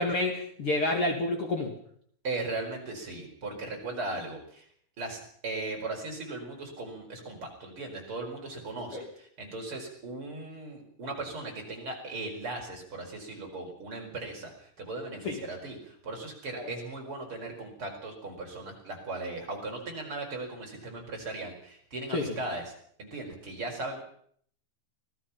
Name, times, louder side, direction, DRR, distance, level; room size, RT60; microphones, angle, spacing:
voice 1, 0.0-1.7 8.9-9.1 15.2-15.4 22.1-22.4, left 2 dB, 45° left, 3 dB, 2.8 m, -29 dB
voice 2, 2.2-4.7 5.0-22.7 23.0-24.0, right 2 dB, 40° right, 1 dB, 5.4 m, -38 dB
25.0 x 18.0 x 5.8 m, 0.63 s
omnidirectional pair, 3.9 m